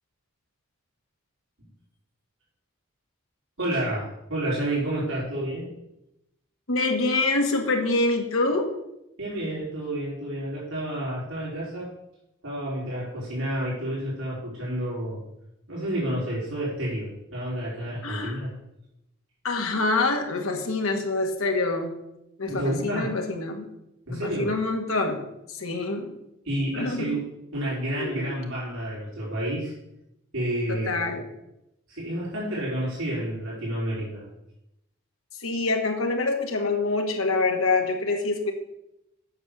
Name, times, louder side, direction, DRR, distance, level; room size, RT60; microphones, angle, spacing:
voice 1, 3.6-5.7 9.2-11.9 12.4-15.2 15.7-18.5 22.5-23.1 24.1-24.5 26.4-27.2 27.5-29.7 30.3-31.0 31.9-34.3, right 1 dB, 65° right, -7 dB, 4.8 m, -30 dB
voice 2, 6.7-8.7 18.0-18.4 19.4-21.9 22.4-23.7 24.1-25.2 25.5-26.1 26.7-27.2 28.0-28.2 30.7-31.2 35.4-38.5, left 3 dB, 75° left, 3 dB, 1.8 m, -26 dB
8.6 x 6.6 x 7.0 m, 0.86 s
head